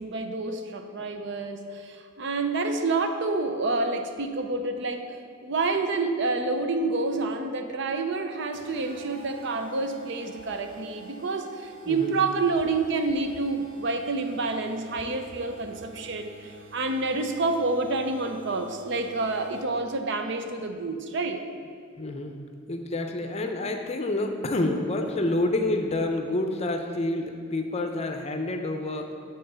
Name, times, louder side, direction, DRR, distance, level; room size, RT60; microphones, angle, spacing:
voice 1, 0.0-5.1 5.4-21.4, right 3 dB, 60° right, 6 dB, 0.6 m, -28 dB
sound 1, 8.5-19.9, right 4 dB, 85° right, 1.1 m, -49 dB
voice 2, 22.0-22.3 22.7-29.1, left 2 dB, 30° left, 5 dB, 0.5 m, -28 dB
7.8 x 3.9 x 6.8 m, 2.2 s
head